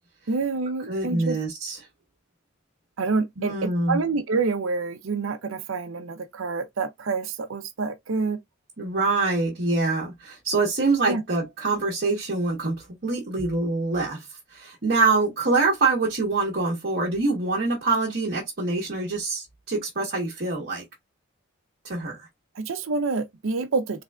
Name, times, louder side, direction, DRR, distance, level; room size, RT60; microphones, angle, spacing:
voice 1, 0.3-1.4 3.0-8.4 11.1-11.2 22.5-24.0, right 4 dB, 80° right, 0.6 m, -27 dB
voice 2, 0.9-1.8 3.4-4.0 8.8-20.9 21.8-22.3, right 3 dB, 50° right, 0.9 m, -25 dB
3.6 x 3.3 x 2.2 m
head